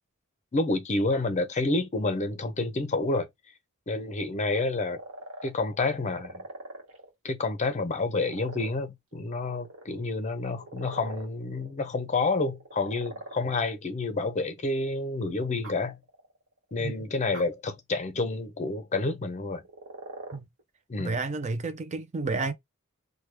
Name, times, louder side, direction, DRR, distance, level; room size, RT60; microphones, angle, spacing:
voice 1, 0.5-3.3 3.9-5.0 5.4-6.4 7.2-16.0 16.7-19.6 20.9-21.2, left 3 dB, 35° left, 0.5 m, -29 dB
sound 1, 4.5-7.1 7.6-8.7 9.1-9.8 10.5-11.7 12.5-13.7 14.9-15.0 15.6-16.4 16.7-16.8 17.3-17.4 19.6-20.6, right 2 dB, 65° right, 1.2 m, -43 dB
voice 2, 21.0-22.5, right 3 dB, 35° right, 0.4 m, -31 dB
3.0 x 2.2 x 3.3 m
head